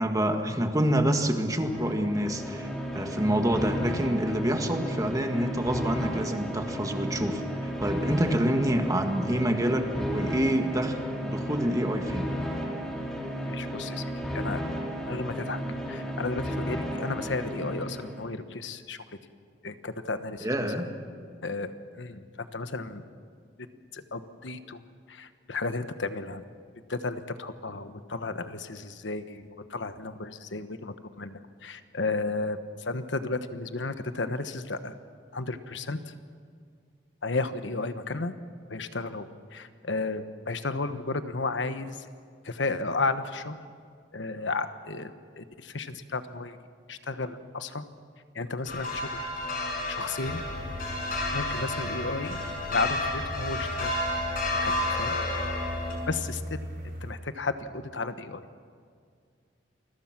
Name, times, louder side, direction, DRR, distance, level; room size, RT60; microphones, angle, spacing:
voice 1, 0.0-2.7 2.9-12.3 15.7-15.8 20.4-20.9, right 1 dB, 20° right, 5 dB, 1.8 m, -27 dB
sound 1, 1.5-18.3, equal, 5° left, 2.8 m, -34 dB
voice 2, 13.4-14.1 14.3-14.6 15.1-19.0 19.6-20.9 21.4-23.0 23.9-24.8 25.1-26.4 26.9-34.9 35.3-36.1 37.2-38.3 38.7-42.1 42.4-43.6 44.1-46.6 46.9-47.8 48.3-49.3 49.9-50.4 51.3-52.4 52.7-54.0 54.6-55.2 55.6-55.7 56.1-56.6 57.0-58.4, left 3 dB, 75° left, 10 dB, 1.2 m, -33 dB
sound 2, 48.7-55.9, left 2 dB, 50° left, 5.6 m, -31 dB
sound 3, 50.2-57.1, equal, 55° right, 6.2 m, -39 dB
28.0 x 21.5 x 6.1 m, 2.1 s
head